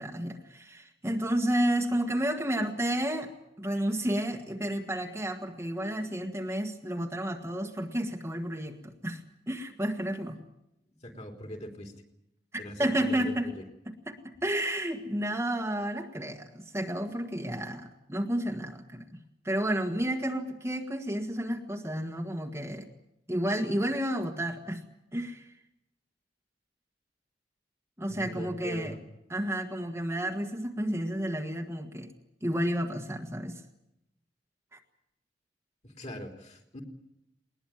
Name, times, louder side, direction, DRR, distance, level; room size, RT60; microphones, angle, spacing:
voice 1, 0.0-3.3 3.6-10.4 12.8-13.5 13.9-19.0 19.4-22.9 23.3-24.8 25.1-25.5 28.0-28.9 29.3-32.1 32.4-33.6 34.7-34.8, right 1 dB, 15° right, 3 dB, 1.5 m, -31 dB
voice 2, 10.9-11.9 12.6-13.6 28.1-29.0 35.8-36.8, equal, 40° left, 3 dB, 3.7 m, -41 dB
20.5 x 20.0 x 9.2 m, 0.85 s
head